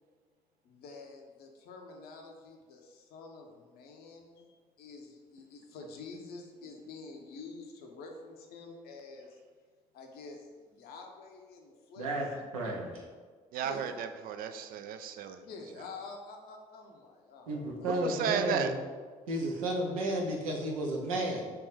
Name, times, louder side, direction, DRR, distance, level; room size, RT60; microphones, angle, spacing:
voice 1, 0.6-9.4 9.9-12.1 12.5-12.7 13.6-14.0 15.4-18.0, left 3 dB, 60° left, 2 dB, 0.7 m, -48 dB
voice 2, 12.0-12.3 12.5-13.0 17.5-18.8 19.3-21.4, right 1 dB, 85° right, 0 dB, 0.7 m, -32 dB
voice 3, 13.5-15.4 17.9-18.7, right 8 dB, 55° right, 8 dB, 0.4 m, -34 dB
3.5 x 3.0 x 4.8 m, 1.5 s
hypercardioid pair, 50°, 18 cm